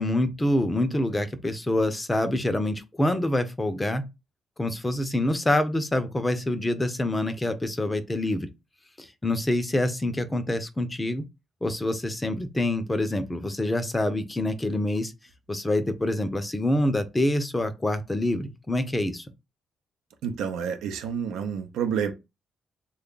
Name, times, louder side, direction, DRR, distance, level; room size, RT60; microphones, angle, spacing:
voice 1, 0.0-4.0 4.6-8.5 9.0-11.2 11.6-15.1 15.5-19.3, left 1 dB, 15° left, 0.6 m, -26 dB
voice 2, 20.2-22.1, right 7 dB, 90° right, 0.6 m, -29 dB
3.2 x 2.3 x 3.8 m
cardioid pair, 90°, 0 cm